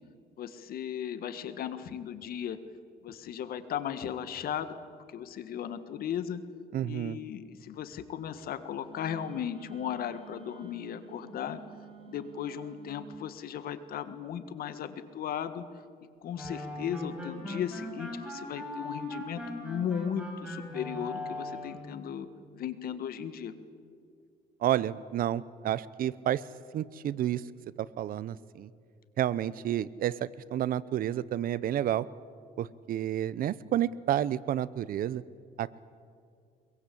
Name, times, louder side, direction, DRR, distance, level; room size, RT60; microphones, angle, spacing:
voice 1, 0.4-2.6 3.0-4.8 5.1-6.4 6.8-11.6 12.0-15.6 16.2-22.3 22.5-23.5, left 9 dB, 60° left, 11 dB, 1.6 m, -36 dB
voice 2, 6.7-7.2 24.6-26.4 26.7-27.4 27.8-28.7 29.2-32.1 32.6-35.2 35.6-35.8, right 11 dB, 60° right, 19 dB, 0.8 m, -30 dB
Wind instrument woodwind instrument, 8.9-13.3, right 7 dB, 35° right, 3.5 m, -51 dB
sound 1, 16.3-21.9, left 1 dB, 5° right, 7.7 m, -39 dB
22.5 x 22.5 x 8.5 m, 2.2 s
cardioid pair, 110°, 17 cm